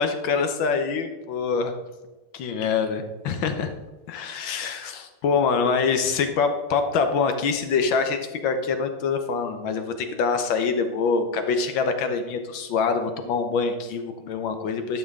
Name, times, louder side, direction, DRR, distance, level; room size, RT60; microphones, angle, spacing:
voice 1, 0.0-1.7 2.3-3.7 4.1-15.0, left 5 dB, 70° left, 7 dB, 1.5 m, -25 dB
11.0 x 6.1 x 3.6 m, 1.2 s
omnidirectional pair, 2.4 m